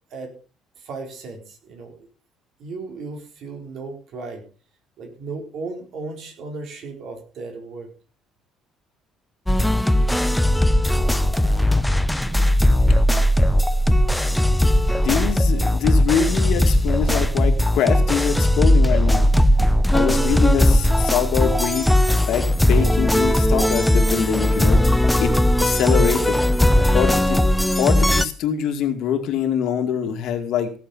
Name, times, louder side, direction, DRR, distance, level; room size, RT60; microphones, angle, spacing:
voice 1, 0.8-2.1 2.6-4.4 5.0-7.9, right 3 dB, 55° right, 3 dB, 4.5 m, -35 dB
sound 1, 9.5-28.3, left 1 dB, 5° left, 0.6 m, -18 dB
voice 2, 14.9-19.3 19.9-21.9 22.3-24.8 25.2-25.3 25.6-26.4 26.9-27.4 27.8-30.7, left 8 dB, 65° left, 5 dB, 2.3 m, -24 dB
17.0 x 7.5 x 5.6 m, 0.38 s
cardioid pair, 150°, 0 cm